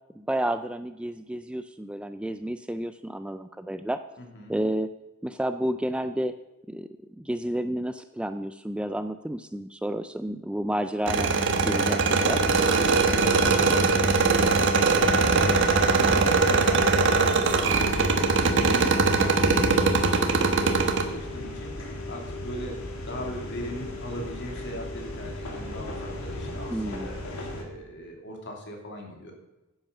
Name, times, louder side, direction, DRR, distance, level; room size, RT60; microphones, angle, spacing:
voice 1, 0.2-4.0 4.5-4.9 5.2-6.3 6.7-6.9 7.2-11.3 11.7-12.4 18.6-18.9 26.7-27.1, right 1 dB, 5° right, 10 dB, 0.3 m, -30 dB
voice 2, 4.2-4.5 12.7-14.5 15.2-29.3, equal, 55° left, 1 dB, 2.8 m, -39 dB
sound 1, 11.1-21.0, right 4 dB, 60° right, 1.4 m, -21 dB
sound 2, 12.2-27.6, left 1 dB, 75° left, 2.2 m, -36 dB
10.5 x 8.9 x 6.7 m, 1.0 s
head